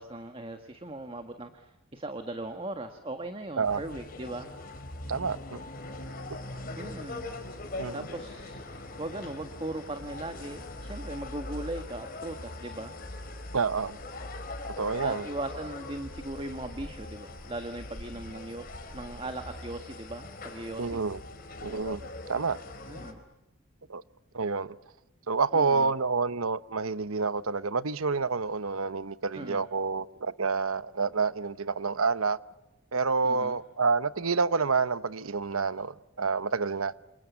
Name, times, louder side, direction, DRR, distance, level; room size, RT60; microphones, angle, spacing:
voice 1, 0.0-4.5 6.7-7.3 7.9-13.0 15.0-18.7 18.9-21.0 22.9-23.2 25.5-25.9 29.3-29.7 33.2-33.6, right 2 dB, 25° right, 1.6 m, -39 dB
sound 1, 3.6-23.1, left 2 dB, 40° left, 4.4 m, -41 dB
voice 2, 5.1-5.6 7.8-8.1 13.5-14.0 14.8-15.3 20.8-21.2 21.6-22.0 22.3-22.6 23.9-24.0 24.3-24.8 25.3-32.4 32.9-36.9, right 4 dB, 80° right, 1.0 m, -28 dB
29.0 x 28.0 x 7.1 m
head